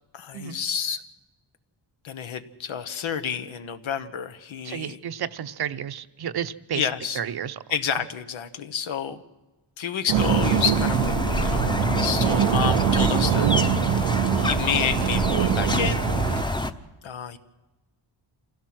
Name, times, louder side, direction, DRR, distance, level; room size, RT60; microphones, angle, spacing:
voice 1, 0.1-1.0 2.0-5.0 6.7-7.2 7.7-9.2 9.8-11.2 11.4-11.7 11.9-16.1 17.0-17.4, left 7 dB, 85° left, 9 dB, 1.3 m, -29 dB
voice 2, 4.7-6.9 7.2-7.6, right 9 dB, 55° right, 12 dB, 0.8 m, -31 dB
sound 1, 10.1-16.7, left 1 dB, 10° left, 0.8 m, -26 dB
sound 2, 10.1-16.4, right 11 dB, 85° right, 0.6 m, -24 dB
27.5 x 16.5 x 6.2 m, 1.1 s
wide cardioid pair, 115°, 46 cm